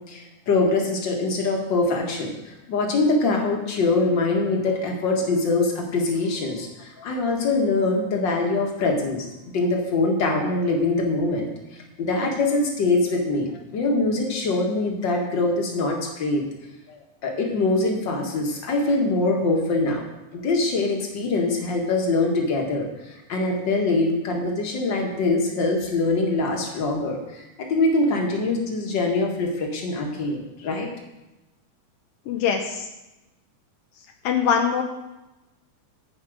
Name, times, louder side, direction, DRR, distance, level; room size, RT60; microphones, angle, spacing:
voice 1, 0.1-9.3 9.5-11.5 12.0-16.4 17.2-20.0 20.3-30.9, left 2 dB, 45° left, 1 dB, 2.0 m, -23 dB
voice 2, 32.3-32.9 34.2-34.8, left 7 dB, 80° left, 3 dB, 1.3 m, -23 dB
16.0 x 5.4 x 5.0 m, 1.0 s
omnidirectional pair, 3.5 m